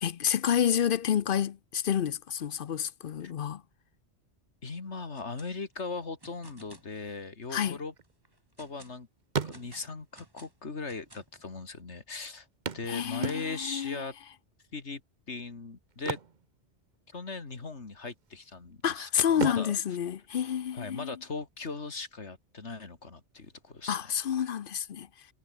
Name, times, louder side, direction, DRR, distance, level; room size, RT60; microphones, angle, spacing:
voice 1, 0.0-3.6 7.5-7.8 12.9-14.0 18.8-21.2 23.9-25.3, left 9 dB, 55° left, 0.8 m, -29 dB
voice 2, 4.6-7.9 8.6-9.1 9.4-12.5 12.7-14.1 14.7-15.0 15.3-16.2 17.1-19.8 20.7-24.0, left 4 dB, 85° left, 2.8 m, -39 dB
sound 1, 5.0-5.5 5.8-6.9 7.4-7.5 8.0-9.0 9.5-11.4, right 1 dB, 20° right, 2.7 m, -55 dB
sound 2, 7.7-8.9 9.2-10.1 11.0-11.1 11.3-11.4 12.7-13.8 15.9-17.2 17.5-17.7 18.2-18.8 19.3-21.1 23.1-23.2 23.6-23.7, right 5 dB, 45° right, 1.1 m, -37 dB
omnidirectional pair, 1.2 m